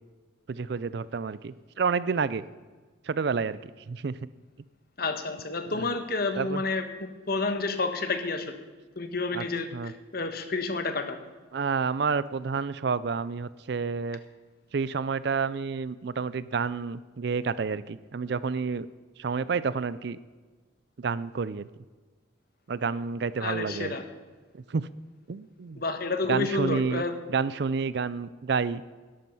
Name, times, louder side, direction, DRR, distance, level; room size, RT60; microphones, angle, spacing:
voice 1, 0.5-2.4 3.0-4.2 6.4-6.6 9.3-9.4 9.7-9.9 11.5-14.2 14.7-18.9 19.2-20.2 21.0-21.7 22.7-23.9 24.5-24.9 25.3-25.8 26.3-27.0 27.3-28.9, right 5 dB, 55° right, 17 dB, 0.4 m, -29 dB
voice 2, 5.0-6.8 7.3-8.5 9.0-11.2 23.4-24.0 25.8-27.1, left 3 dB, 50° left, 7 dB, 1.2 m, -30 dB
12.0 x 12.0 x 5.5 m, 1.4 s
head